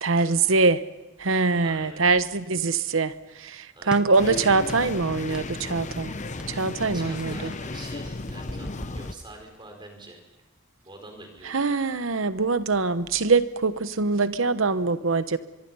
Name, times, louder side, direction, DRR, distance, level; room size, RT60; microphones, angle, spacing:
voice 1, 0.0-0.8 1.2-6.1 6.5-7.5 11.4-15.4, right 4 dB, 75° right, 13 dB, 1.0 m, -23 dB
voice 2, 1.6-2.1 3.7-5.0 5.6-6.1 6.9-10.2 10.8-11.7, right 2 dB, 20° right, 3 dB, 4.6 m, -45 dB
sound 1, 3.9-4.2 4.7-5.0 5.3-5.6 5.9-6.1 6.4-9.7, equal, 5° right, 0.8 m, -40 dB
sound 2, 4.2-9.1, left 2 dB, 35° left, 0.8 m, -35 dB
24.0 x 23.0 x 5.6 m, 1.0 s
head